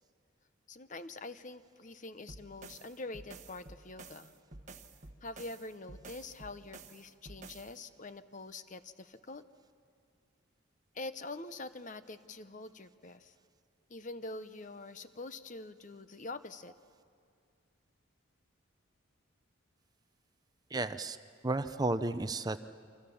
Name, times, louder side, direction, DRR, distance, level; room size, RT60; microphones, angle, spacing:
voice 1, 0.7-4.3 5.2-9.4 10.9-13.3 13.9-16.7, left 2 dB, 40° left, 12 dB, 0.9 m, -45 dB
sound 1, 2.3-7.8, right 3 dB, 35° right, 1.3 m, -51 dB
voice 2, 20.7-21.2 21.4-22.6, right 2 dB, 20° right, 11 dB, 0.5 m, -32 dB
28.5 x 25.5 x 7.1 m, 2.3 s
head